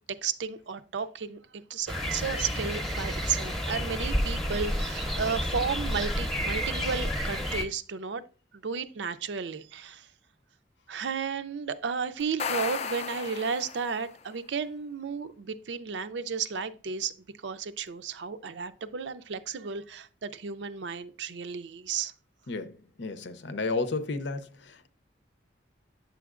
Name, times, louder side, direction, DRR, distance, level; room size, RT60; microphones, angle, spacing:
voice 1, 0.2-8.2 8.5-10.1 10.9-17.1 17.4-22.1, right 6 dB, 80° right, 0.5 m, -33 dB
sound 1, 1.9-7.6, equal, ahead, 0.8 m, -30 dB
sound 2, 12.2-14.2, left 5 dB, 35° left, 0.4 m, -34 dB
voice 2, 22.5-24.9, left 3 dB, 75° left, 0.7 m, -33 dB
9.0 x 7.0 x 2.4 m
head